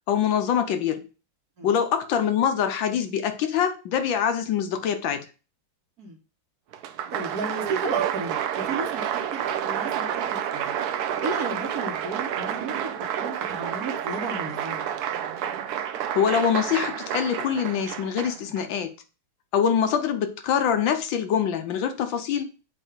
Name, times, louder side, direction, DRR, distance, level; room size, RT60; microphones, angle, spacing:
voice 1, 0.1-1.1 1.6-5.3 16.1-18.9 19.5-22.5, left 8 dB, 70° left, 1.4 m, -24 dB
Applause, 6.7-18.6, right 9 dB, 70° right, 0.9 m, -29 dB
voice 2, 7.1-9.0 9.3-10.7 11.2-14.8, right 2 dB, 50° right, 1.5 m, -34 dB
7.7 x 2.7 x 4.9 m
omnidirectional pair, 2.3 m